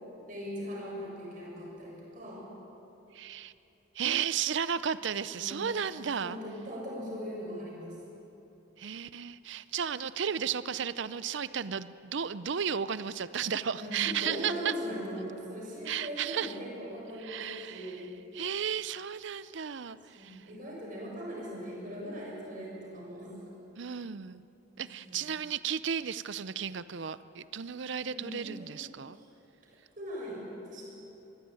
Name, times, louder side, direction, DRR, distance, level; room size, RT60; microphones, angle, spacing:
voice 1, 0.3-2.5 5.3-5.8 6.2-8.0 13.7-18.1 20.1-23.3 24.7-25.2 28.0-29.3 30.0-30.9, equal, 40° right, -4 dB, 7.2 m, -40 dB
voice 2, 3.1-3.5 3.9-6.4 8.8-14.7 15.9-16.5 17.2-18.0 18.3-20.5 23.8-24.4 24.8-29.2, right 7 dB, 60° right, 15 dB, 0.5 m, -34 dB
22.0 x 16.0 x 9.1 m, 2.9 s
head